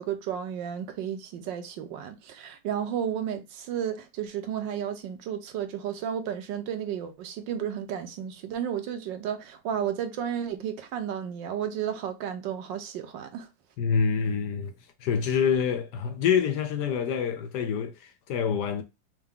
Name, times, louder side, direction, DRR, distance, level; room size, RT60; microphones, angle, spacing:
voice 1, 0.0-13.5, right 9 dB, 75° right, 1.4 m, -33 dB
voice 2, 13.8-14.7 15.0-18.8, left 7 dB, 70° left, 1.0 m, -26 dB
4.5 x 2.2 x 3.5 m
omnidirectional pair, 2.0 m